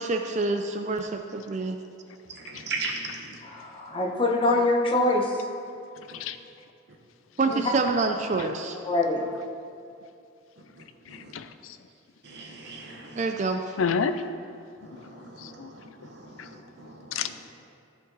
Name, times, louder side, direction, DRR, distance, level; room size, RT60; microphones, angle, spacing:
voice 1, 0.0-1.8 7.4-8.8 13.2-13.8, right 3 dB, 35° right, 5 dB, 0.4 m, -27 dB
voice 2, 2.5-3.3 6.1-6.2 12.2-13.2 15.4-15.6 16.0-17.0, right 4 dB, 55° right, 1 dB, 1.2 m, -37 dB
voice 3, 3.4-5.5 7.5-7.6 8.8-9.3, left 2 dB, 25° left, -1 dB, 1.1 m, -24 dB
voice 4, 11.1-11.8 13.8-14.2 15.4-15.7 16.4-16.5 17.1-17.4, left 6 dB, 85° left, 11 dB, 0.5 m, -30 dB
15.0 x 5.3 x 4.0 m, 2.6 s
head